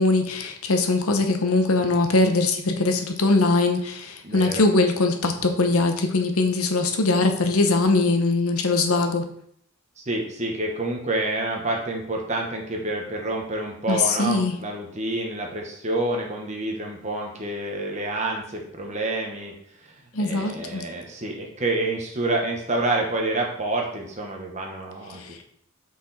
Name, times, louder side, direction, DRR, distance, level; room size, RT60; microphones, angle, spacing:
voice 1, 0.0-9.3 13.9-14.6 20.1-20.8 25.2-25.3, left 3 dB, 80° left, 6 dB, 0.8 m, -21 dB
voice 2, 4.2-4.6 10.0-19.5 19.8-19.9 20.2-25.4, right 2 dB, 30° right, 1 dB, 1.1 m, -28 dB
6.0 x 4.8 x 4.2 m, 0.67 s
head